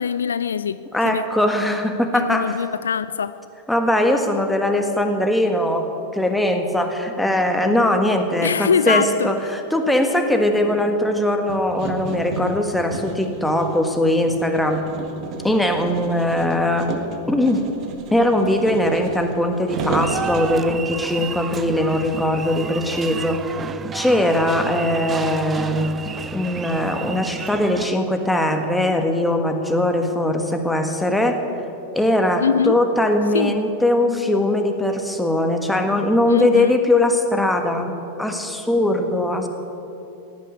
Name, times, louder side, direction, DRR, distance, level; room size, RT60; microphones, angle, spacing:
voice 1, 0.0-1.2 2.1-3.4 8.4-9.3 32.4-32.8 33.3-33.6 36.3-36.7, left 7 dB, 70° left, 0.3 m, -22 dB
voice 2, 0.9-2.6 3.7-14.8 15.4-16.9 17.3-17.7 18.1-23.5 23.9-26.0 26.3-31.4 31.9-39.5, left 1 dB, 5° left, 1.5 m, -20 dB
sound 1, 11.5-20.6, right 4 dB, 35° right, 1.5 m, -32 dB
sound 2, 19.7-27.9, right 6 dB, 20° right, 0.5 m, -32 dB
16.5 x 9.5 x 8.3 m
figure-of-eight pair, 90°, 0 cm